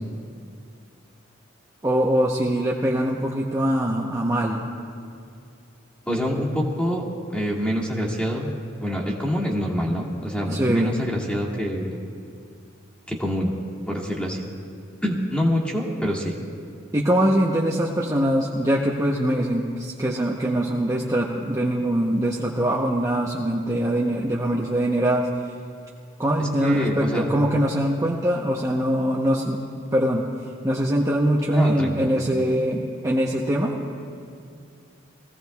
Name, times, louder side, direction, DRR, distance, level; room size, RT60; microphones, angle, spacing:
voice 1, 1.8-4.7 10.5-11.0 16.9-25.3 26.2-30.3 30.6-33.8, right 1 dB, 15° right, -4 dB, 0.8 m, -23 dB
voice 2, 6.1-7.0 7.3-8.5 8.8-12.0 13.1-13.5 13.9-14.5 15.0-16.3 26.4-27.2 31.5-32.3, equal, 5° left, -3 dB, 1.8 m, -26 dB
23.0 x 16.0 x 2.3 m, 2.3 s
head